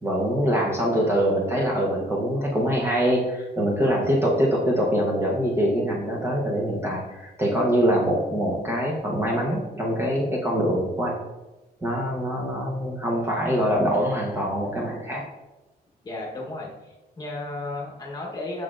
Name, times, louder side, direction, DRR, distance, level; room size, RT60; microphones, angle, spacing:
voice 1, 0.0-11.2 11.8-15.2, equal, 15° right, -3 dB, 0.8 m, -24 dB
voice 2, 16.0-18.6, left 2 dB, 25° left, -2 dB, 1.1 m, -34 dB
6.5 x 6.3 x 2.5 m, 1.1 s
cardioid pair, 170°, 17 cm